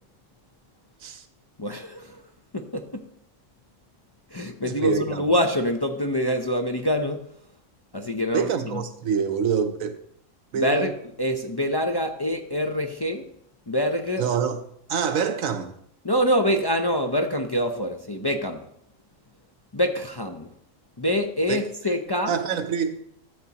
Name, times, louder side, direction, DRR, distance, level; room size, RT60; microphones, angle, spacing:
voice 1, 1.6-2.2 2.5-3.0 4.3-7.2 7.9-8.8 10.5-13.2 13.7-14.3 16.0-18.6 19.7-20.5 21.0-22.3, equal, 35° left, 0.4 m, -25 dB
voice 2, 4.6-5.2 8.3-10.0 10.5-11.0 14.2-14.6 14.9-15.7 21.5-21.6 22.3-23.0, right 6 dB, 80° right, 1.2 m, -26 dB
13.5 x 8.3 x 2.9 m
omnidirectional pair, 1.4 m